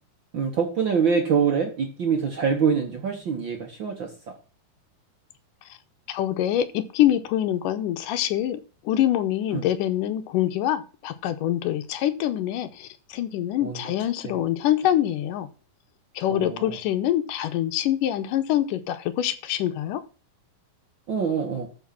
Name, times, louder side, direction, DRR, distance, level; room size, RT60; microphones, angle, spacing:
voice 1, 0.3-4.3 9.5-9.6 13.6-14.4 16.3-16.8 21.1-21.7, right 6 dB, 75° right, 2 dB, 1.1 m, -25 dB
voice 2, 6.1-8.6 8.9-15.5 16.2-20.0, left 12 dB, 75° left, 10 dB, 2.2 m, -25 dB
13.5 x 4.8 x 5.8 m, 0.36 s
omnidirectional pair, 4.1 m